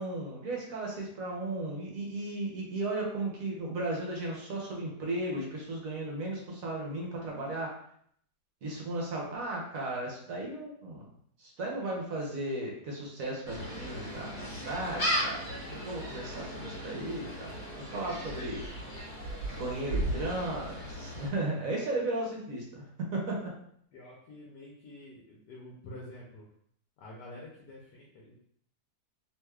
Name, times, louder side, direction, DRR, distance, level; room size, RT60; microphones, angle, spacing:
voice 1, 0.0-7.8 8.6-11.1 11.4-15.4 15.8-18.6 19.5-23.5, right 2 dB, 60° right, -2 dB, 1.1 m, -35 dB
Gull seagull, 13.5-21.3, equal, 45° left, 1.7 m, -36 dB
voice 2, 23.9-26.5 27.0-28.4, left 1 dB, 75° left, -3 dB, 1.2 m, -48 dB
3.3 x 3.0 x 2.3 m, 0.65 s
omnidirectional pair, 1.8 m